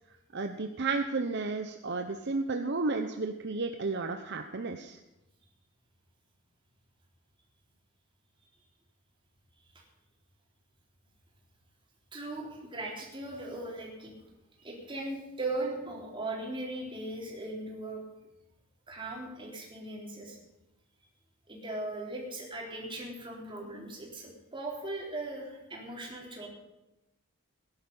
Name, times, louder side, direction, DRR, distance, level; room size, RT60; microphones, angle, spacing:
voice 1, 0.3-5.0, right 3 dB, 55° right, 6 dB, 0.9 m, -32 dB
voice 2, 12.1-14.1 14.6-18.0 18.9-20.4 21.5-26.5, right 2 dB, 25° right, -2 dB, 3.9 m, -38 dB
18.0 x 11.0 x 5.5 m, 0.97 s
head